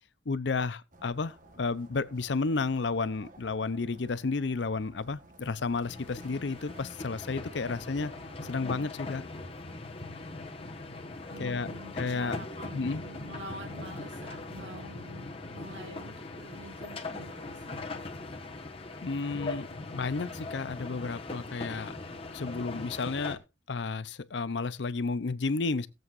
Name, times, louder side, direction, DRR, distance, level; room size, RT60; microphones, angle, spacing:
voice 1, 0.3-8.1 8.4-9.2 11.4-11.7 12.0-12.4 12.7-13.0 19.0-22.0 22.3-23.4 23.7-25.9, left 4 dB, 70° left, 0.6 m, -32 dB
sound 1, 0.9-8.5, right 2 dB, 45° right, 1.3 m, -55 dB
sound 2, 5.8-23.4, left 2 dB, 30° left, 1.3 m, -40 dB
voice 2, 11.3-15.3 15.5-17.8, right 1 dB, 80° right, 2.3 m, -46 dB
18.5 x 7.8 x 2.5 m
head